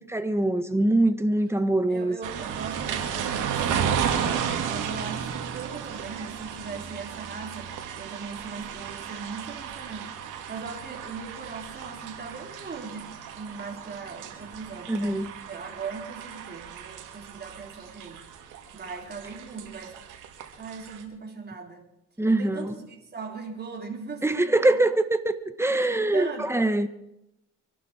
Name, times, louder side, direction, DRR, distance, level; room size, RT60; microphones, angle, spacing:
voice 1, 0.1-2.2 14.9-15.3 22.2-22.7 24.2-26.9, right 2 dB, 10° right, 1.4 m, -23 dB
voice 2, 1.9-18.2 18.7-20.0 20.6-21.8 22.2-24.8 25.7-26.5, right 5 dB, 35° right, 3.7 m, -39 dB
sound 1, 2.2-21.0, right 8 dB, 90° right, 2.3 m, -34 dB
24.5 x 12.0 x 4.5 m
cardioid pair, 90°, 30 cm